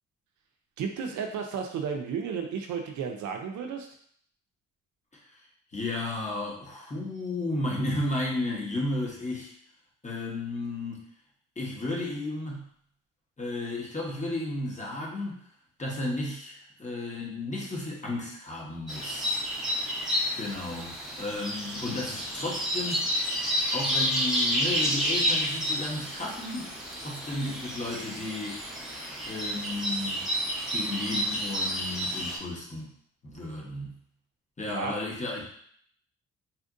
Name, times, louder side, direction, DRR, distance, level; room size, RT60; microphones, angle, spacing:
voice 1, 0.8-3.9 34.7-35.0, right 6 dB, 75° right, 4 dB, 0.5 m, -33 dB
voice 2, 5.7-9.5 10.0-11.0 11.6-12.6 13.4-15.4 15.8-19.4 20.4-23.1 23.7-26.7 27.0-28.7 29.2-30.3 30.7-32.9 33.2-34.0 34.6-35.4, left 2 dB, 25° left, -3 dB, 1.1 m, -33 dB
sound 1, 18.9-32.4, equal, ahead, 0.8 m, -30 dB
4.3 x 2.5 x 2.5 m, 0.62 s
cardioid pair, 90°, 30 cm